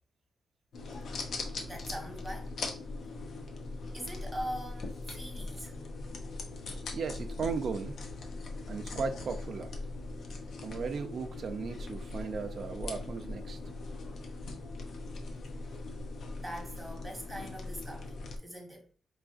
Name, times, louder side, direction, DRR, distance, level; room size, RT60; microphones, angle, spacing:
sound 1, 0.7-18.4, left 3 dB, 70° left, 0.8 m, -40 dB
voice 1, 1.7-2.5 3.9-5.7 15.6-15.8 16.4-18.9, equal, 5° right, 1.5 m, -42 dB
voice 2, 6.9-8.0 8.7-9.8 10.6-13.6, right 5 dB, 60° right, 0.5 m, -36 dB
4.8 x 3.2 x 2.6 m
cardioid pair, 115°, 0 cm